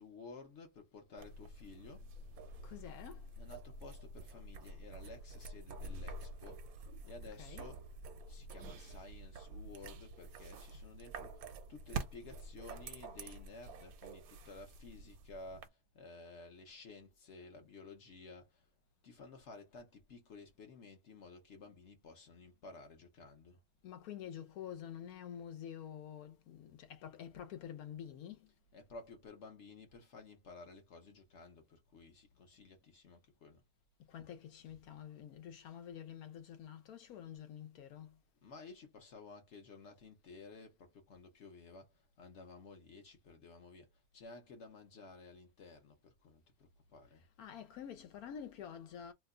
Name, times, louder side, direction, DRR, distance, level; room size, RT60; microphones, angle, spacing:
voice 1, 0.0-2.1 3.3-7.9 8.3-18.7 19.0-23.6 28.7-33.6 38.4-47.3, left 3 dB, 60° left, 1.0 m, -54 dB
sound 1, 1.2-15.7, right 3 dB, 80° right, 1.0 m, -48 dB
voice 2, 2.6-3.4 7.3-7.7 23.8-28.5 34.1-38.2 47.1-49.1, left 9 dB, 80° left, 1.1 m, -48 dB
2.8 x 2.2 x 3.5 m
omnidirectional pair, 1.5 m